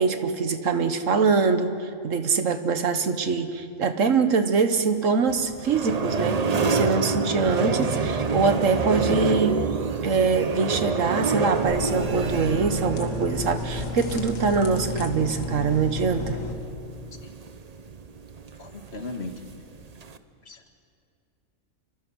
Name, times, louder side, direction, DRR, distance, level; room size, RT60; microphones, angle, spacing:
voice 1, 0.0-9.6 10.0-16.4, right 4 dB, 75° right, 9 dB, 1.6 m, -24 dB
sound 1, 5.3-20.2, right 4 dB, 35° right, 0.8 m, -29 dB
sound 2, 11.5-16.5, left 3 dB, 90° left, 2.0 m, -32 dB
voice 2, 18.6-19.3 20.5-20.8, left 2 dB, 55° left, 5 dB, 1.9 m, -37 dB
26.0 x 23.5 x 6.4 m, 2.4 s
omnidirectional pair, 1.3 m